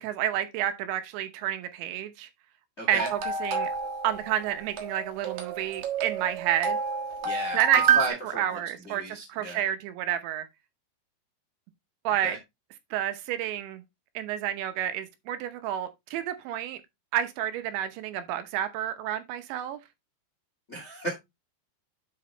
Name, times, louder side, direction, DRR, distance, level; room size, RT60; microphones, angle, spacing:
voice 1, 0.0-2.3 2.9-3.7 4.0-6.8 7.5-8.0 8.3-10.5 12.0-12.4 12.9-13.8 14.1-16.8 17.1-19.8, right 11 dB, 80° right, 3.2 m, -30 dB
voice 2, 2.8-3.1 7.2-7.6 7.9-8.6 8.8-9.6 12.2-12.4 20.7-21.1, right 1 dB, 40° left, 0.9 m, -34 dB
sound 1, 3.0-8.1, right 6 dB, 60° right, 2.1 m, -29 dB
9.6 x 4.8 x 3.2 m
omnidirectional pair, 5.3 m